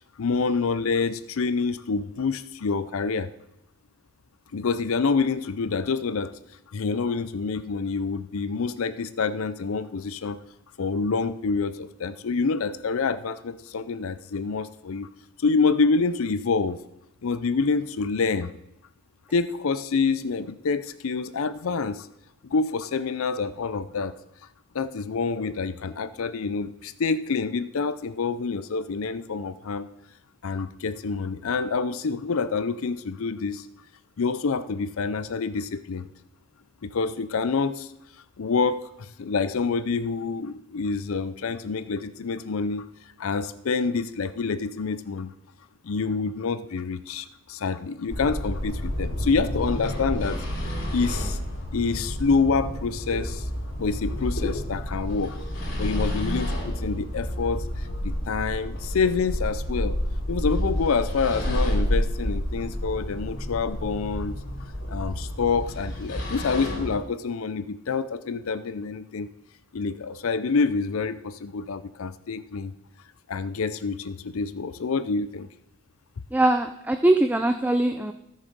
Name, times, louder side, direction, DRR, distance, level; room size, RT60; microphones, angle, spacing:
voice 1, 0.2-3.3 4.5-6.3 6.7-10.4 10.8-15.1 15.4-16.8 17.2-18.5 19.3-22.1 22.4-24.2 24.7-29.9 30.4-33.7 34.2-36.1 36.8-37.9 38.4-42.8 43.2-45.3 45.8-51.4 51.7-53.5 53.8-55.4 55.8-60.0 60.3-64.4 64.9-69.3 69.7-72.7 73.3-75.5, left 4 dB, 70° left, 13 dB, 0.5 m, -27 dB
sound 1, 48.1-67.0, equal, 55° left, 3.4 m, -30 dB
voice 2, 76.3-78.1, right 1 dB, 5° right, 8 dB, 0.3 m, -21 dB
13.5 x 6.4 x 5.3 m, 0.83 s
head